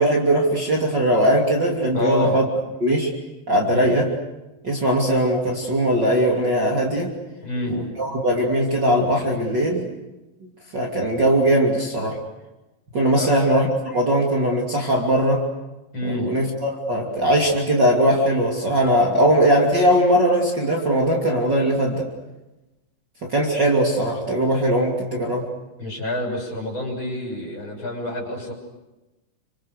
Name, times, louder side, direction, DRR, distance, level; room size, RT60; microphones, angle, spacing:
voice 1, 0.0-2.4 2.8-3.1 3.5-4.1 4.6-7.1 7.7-10.0 10.7-12.2 12.9-15.5 16.0-22.1 23.2-25.4, right 1 dB, 30° right, -1 dB, 3.3 m, -20 dB
voice 2, 1.9-2.4 3.7-3.9 7.4-7.8 13.1-13.3 15.9-16.3 25.8-28.5, left 1 dB, 35° left, 1 dB, 7.1 m, -28 dB
30.0 x 26.0 x 6.7 m, 1.0 s
omnidirectional pair, 4.0 m